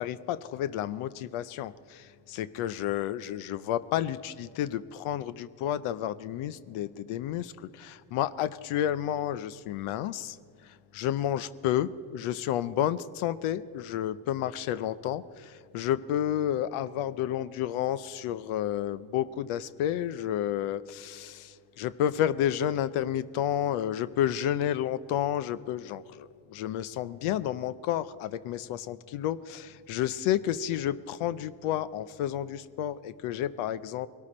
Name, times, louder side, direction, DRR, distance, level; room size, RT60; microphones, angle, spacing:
voice 1, 0.0-10.4 10.6-34.1, left 11 dB, 80° left, 15 dB, 0.6 m, -31 dB
20.5 x 13.0 x 4.2 m, 2.2 s
cardioid pair, 80°, 49 cm